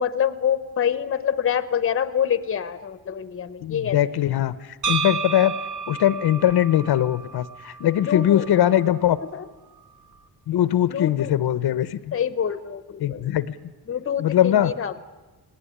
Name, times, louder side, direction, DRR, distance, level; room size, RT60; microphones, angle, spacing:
voice 1, 0.0-4.0 8.0-8.5 9.2-9.5 10.9-11.3 12.1-13.3 13.9-15.0, left 8 dB, 35° left, 14 dB, 0.9 m, -26 dB
voice 2, 3.6-5.5 5.9-9.2 10.5-12.2 13.0-13.6 14.2-14.7, left 11 dB, 70° left, 15 dB, 0.9 m, -21 dB
sound 1, 4.8-8.9, right 5 dB, 50° right, 1.9 m, -32 dB
19.5 x 18.0 x 10.0 m, 1.1 s
wide cardioid pair, 180°, 40 cm